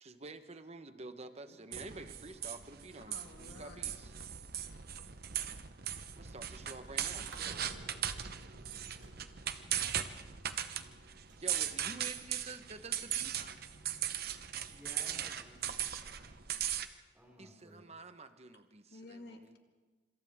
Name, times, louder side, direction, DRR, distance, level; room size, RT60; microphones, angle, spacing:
voice 1, 0.0-4.1 6.2-7.6 11.4-13.5 17.4-19.6, right 3 dB, 35° right, 9 dB, 1.2 m, -49 dB
sound 1, 1.7-16.9, right 10 dB, 60° right, 1.0 m, -39 dB
voice 2, 3.1-3.9 9.5-10.0 13.9-14.0 18.9-19.6, left 2 dB, 65° left, 4 dB, 2.3 m, -53 dB
sound 2, 7.3-14.4, right 2 dB, 85° right, 2.0 m, -58 dB
voice 3, 14.7-16.4 17.1-17.9, equal, 10° right, -2 dB, 5.6 m, -56 dB
26.5 x 26.5 x 3.7 m, 1.3 s
head